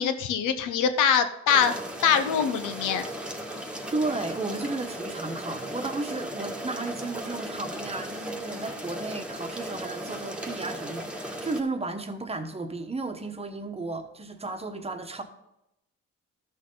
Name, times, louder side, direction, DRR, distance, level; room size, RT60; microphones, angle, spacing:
voice 1, 0.0-1.7 2.0-3.1, left 7 dB, 85° left, 1.0 m, -23 dB
sound 1, 1.5-11.6, right 1 dB, 5° right, 1.4 m, -36 dB
voice 2, 3.9-15.2, right 3 dB, 20° right, 1.2 m, -33 dB
13.5 x 6.3 x 3.9 m
cardioid pair, 90°, 30 cm